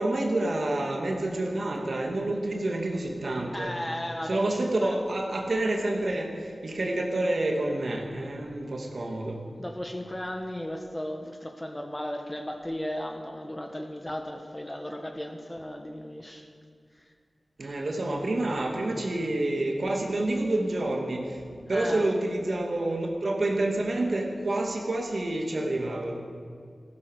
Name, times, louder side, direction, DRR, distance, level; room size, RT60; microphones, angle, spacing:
voice 1, 0.0-3.7 4.2-9.4 17.6-26.2, right 2 dB, 70° right, 1 dB, 2.4 m, -28 dB
voice 2, 3.5-5.0 9.6-16.5 21.7-22.1, left 1 dB, 20° left, 4 dB, 1.4 m, -35 dB
14.5 x 14.5 x 6.7 m, 2.3 s
wide cardioid pair, 60°, 0 cm